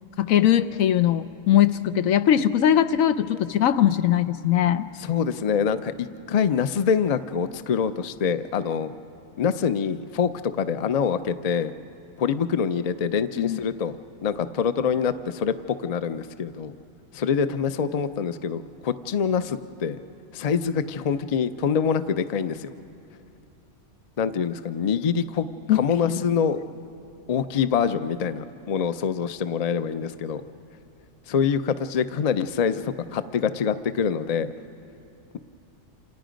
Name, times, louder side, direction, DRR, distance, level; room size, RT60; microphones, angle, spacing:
voice 1, 0.2-4.9 13.4-13.6 25.7-26.2, left 10 dB, 85° left, 12 dB, 1.1 m, -21 dB
voice 2, 5.0-8.9 9.4-11.7 12.2-14.0 14.2-15.5 15.8-16.7 17.1-20.0 20.3-22.7 24.2-26.6 27.3-30.4 31.3-34.5, left 7 dB, 45° left, 11 dB, 0.5 m, -25 dB
28.0 x 27.5 x 5.2 m, 2.7 s
omnidirectional pair, 1.4 m